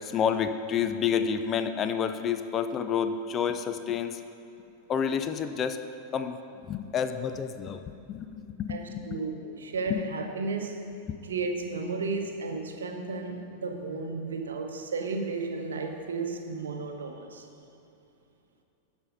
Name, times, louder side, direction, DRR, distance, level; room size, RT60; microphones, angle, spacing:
voice 1, 0.0-4.2 4.9-5.8 6.1-9.2 9.9-10.0 11.1-11.2, left 7 dB, 30° left, 9 dB, 0.4 m, -29 dB
voice 2, 8.7-10.9 11.2-17.5, right 3 dB, 70° right, 5 dB, 0.8 m, -33 dB
12.5 x 4.4 x 5.3 m, 2.8 s
figure-of-eight pair, 90°, 0 cm